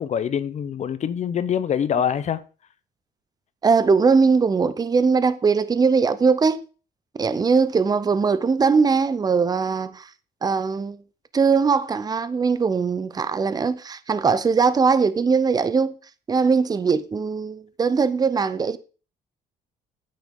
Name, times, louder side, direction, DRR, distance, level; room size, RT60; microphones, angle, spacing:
voice 1, 0.0-2.4, left 8 dB, 45° left, 0.7 m, -24 dB
voice 2, 3.6-6.6 7.2-10.1 10.4-11.0 11.3-16.0 16.3-18.8, right 5 dB, 25° right, 0.7 m, -20 dB
9.0 x 9.0 x 3.7 m
cardioid pair, 110°, 17 cm